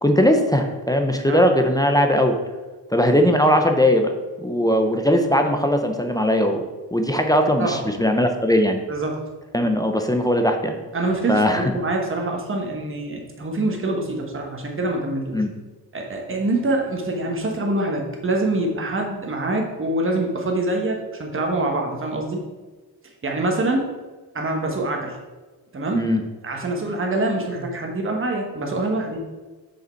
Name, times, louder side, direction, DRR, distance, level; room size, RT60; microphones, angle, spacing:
voice 1, 0.0-2.4 2.9-4.1 4.4-8.8 9.5-10.8 11.3-11.6 15.3-15.5 25.9-26.2, equal, 10° left, 4 dB, 0.5 m, -19 dB
voice 2, 8.9-9.2 10.9-15.4 15.9-22.4 23.2-23.8 24.3-25.2 25.7-26.0 26.4-29.2, right 2 dB, 30° right, 1 dB, 1.2 m, -25 dB
6.6 x 5.2 x 4.4 m, 1.2 s
wide cardioid pair, 150°, 43 cm